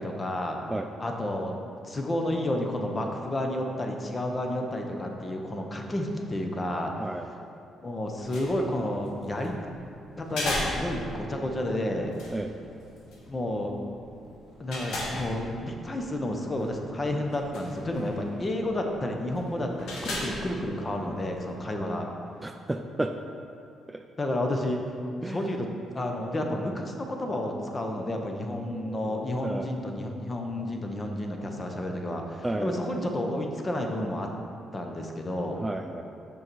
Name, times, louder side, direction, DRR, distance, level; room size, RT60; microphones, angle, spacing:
voice 1, 0.0-0.6 1.0-6.9 7.8-9.6 10.2-12.1 13.3-13.7 14.6-22.1 24.2-24.8 25.2-25.7 25.9-34.3 34.7-35.6, left 1 dB, 30° left, 3 dB, 0.8 m, -31 dB
sound 1, 8.0-21.5, left 1 dB, 80° left, 1.3 m, -39 dB
voice 2, 22.4-23.1 23.9-24.0 25.2-25.4 27.9-28.1 28.6-29.7 32.4-32.9 35.6-36.0, right 1 dB, 15° right, 5 dB, 0.3 m, -33 dB
6.3 x 5.5 x 4.5 m, 2.5 s
cardioid pair, 90°, 0 cm